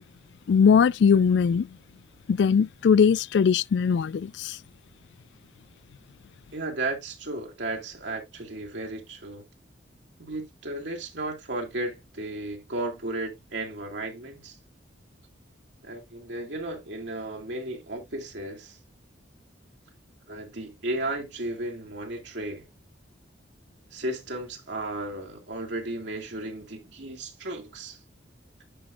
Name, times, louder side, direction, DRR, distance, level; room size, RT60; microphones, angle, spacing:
voice 1, 0.5-1.7 2.3-4.6, left 6 dB, 65° left, 0.3 m, -20 dB
voice 2, 6.5-9.4 10.2-14.6 15.8-18.8 20.3-22.6 23.9-28.0, right 2 dB, 70° right, 2.2 m, -34 dB
10.0 x 5.9 x 2.4 m
head